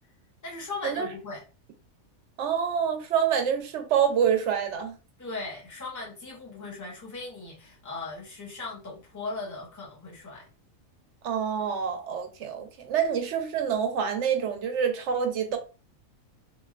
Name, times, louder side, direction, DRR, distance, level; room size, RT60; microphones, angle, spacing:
voice 1, 0.4-1.4 5.2-10.5, left 3 dB, 15° left, 0.8 m, -38 dB
voice 2, 2.4-4.9 11.2-15.6, right 7 dB, 65° right, 0.8 m, -26 dB
3.1 x 2.5 x 2.3 m
omnidirectional pair, 1.4 m